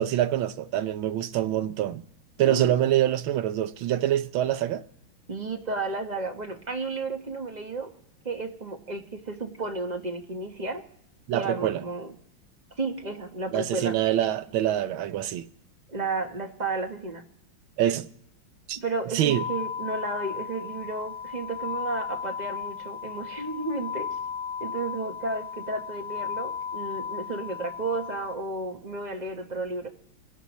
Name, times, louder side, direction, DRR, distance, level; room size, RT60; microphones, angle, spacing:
voice 1, 0.0-2.0 2.4-4.8 11.3-11.8 13.5-15.5 17.8-18.1 18.7-18.8 19.1-19.4, right 12 dB, 85° right, 1.5 m, -25 dB
voice 2, 2.4-2.7 5.3-7.9 8.2-10.8 11.3-12.1 12.8-14.0 15.9-17.2 18.8-24.1 24.6-29.9, right 3 dB, 30° right, 0.8 m, -32 dB
sound 1, 19.3-28.3, left 7 dB, 85° left, 1.6 m, -35 dB
25.5 x 11.0 x 3.0 m
omnidirectional pair, 2.2 m